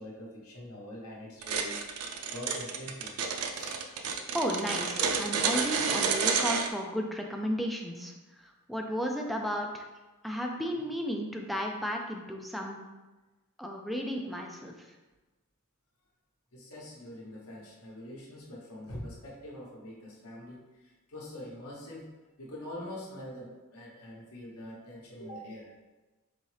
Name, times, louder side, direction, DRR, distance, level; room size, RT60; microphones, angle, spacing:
voice 1, 0.0-1.8 2.3-3.2 3.5-3.8 16.5-20.6 21.1-22.1 22.4-25.7, left 1 dB, 80° left, -3 dB, 1.0 m, -44 dB
sound 1, 1.4-6.7, right 5 dB, 90° right, 0.5 m, -30 dB
voice 2, 4.3-8.1 8.4-9.9 10.2-12.8 13.6-14.7, equal, ahead, 1 dB, 0.4 m, -33 dB
4.1 x 3.6 x 3.2 m, 1.2 s
head